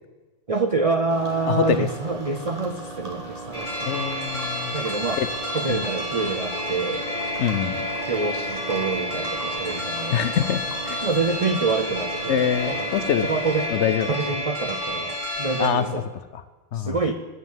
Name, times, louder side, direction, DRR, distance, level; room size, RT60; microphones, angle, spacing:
voice 1, 0.5-3.9 4.7-5.2 5.5-7.1 7.8-10.5 11.0-12.9 13.2-13.7 14.1-16.0 16.7-17.1, right 4 dB, 50° right, 7 dB, 0.4 m, -27 dB
sound 1, 1.1-13.7, right 2 dB, 25° right, 2.1 m, -38 dB
voice 2, 1.5-1.9 3.9-4.7 5.2-5.3 5.7-5.8 7.4-7.9 10.1-11.0 12.3-13.3 13.7-14.1 15.6-15.8 16.3-16.4 16.7-17.0, left 8 dB, 65° left, 13 dB, 0.9 m, -24 dB
sound 2, 3.5-15.7, left 1 dB, 35° left, 2.6 m, -30 dB
10.5 x 9.7 x 7.3 m, 1.3 s
omnidirectional pair, 1.4 m